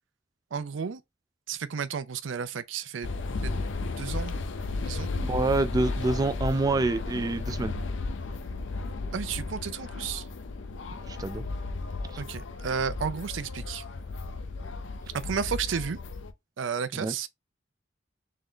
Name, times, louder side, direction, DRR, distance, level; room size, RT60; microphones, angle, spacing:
voice 1, 0.5-1.0 1.5-3.1 3.4-3.7 4.0-4.3 4.8-5.1 9.1-10.3 12.2-13.8 15.1-16.0 16.6-17.3, right 6 dB, 80° right, 0.5 m, -32 dB
sound 1, 3.0-16.3, left 3 dB, 75° left, 0.6 m, -34 dB
voice 2, 5.2-7.8 11.1-11.5 12.1-12.2 16.9-17.1, right 2 dB, 20° right, 0.3 m, -27 dB
3.8 x 3.4 x 3.6 m
head